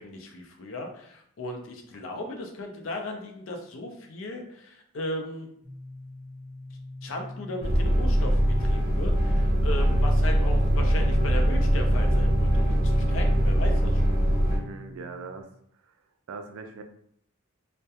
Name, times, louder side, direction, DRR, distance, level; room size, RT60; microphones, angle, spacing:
voice 1, 0.0-5.5 7.0-14.1, left 1 dB, 75° left, 3 dB, 0.5 m, -37 dB
sound 1, 5.6-15.4, left 1 dB, 5° right, 0.7 m, -42 dB
sound 2, 7.6-14.6, equal, 50° right, 0.6 m, -22 dB
voice 2, 14.5-15.5 15.8-15.9 16.3-16.8, right 4 dB, 85° right, 6 dB, 0.3 m, -40 dB
2.3 x 2.1 x 2.7 m, 0.68 s
head